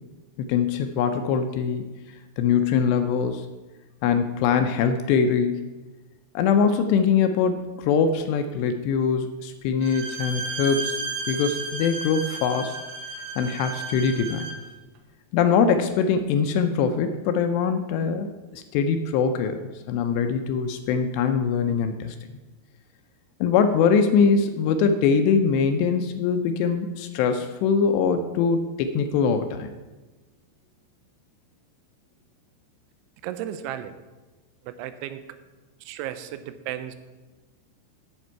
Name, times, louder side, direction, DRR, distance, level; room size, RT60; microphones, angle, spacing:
voice 1, 0.4-1.9 2.4-3.5 4.0-5.7 6.4-11.0 11.3-12.8 13.4-14.5 15.3-19.6 19.9-22.2 23.4-29.7, left 6 dB, 80° left, 8 dB, 2.6 m, -22 dB
Bowed string instrument, 9.8-14.7, right 3 dB, 70° right, 2.6 m, -33 dB
voice 2, 33.2-33.9 34.6-35.2 35.8-37.0, right 11 dB, 90° right, 11 dB, 3.0 m, -34 dB
9.9 x 7.6 x 4.5 m, 1.2 s
omnidirectional pair, 5.2 m